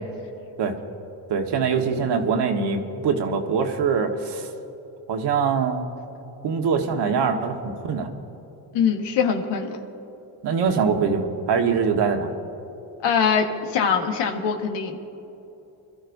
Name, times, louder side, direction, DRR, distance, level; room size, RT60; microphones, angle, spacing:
voice 1, 1.3-4.5 5.1-5.9 6.4-8.1 10.4-12.3, right 5 dB, 70° right, 3 dB, 1.5 m, -23 dB
voice 2, 8.7-9.8 13.0-15.0, left 6 dB, 80° left, 4 dB, 1.6 m, -23 dB
26.0 x 13.0 x 2.7 m, 3.0 s
cardioid pair, 85°, 42 cm